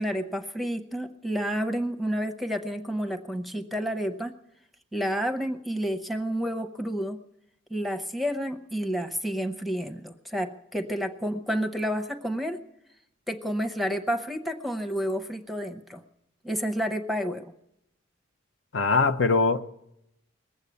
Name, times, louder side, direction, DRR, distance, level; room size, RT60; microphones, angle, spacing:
voice 1, 0.0-4.3 4.9-7.2 7.7-12.6 13.3-16.0 16.4-17.4, equal, ahead, 0.8 m, -30 dB
voice 2, 18.7-19.6, left 4 dB, 70° left, 0.8 m, -22 dB
20.5 x 8.2 x 8.4 m
head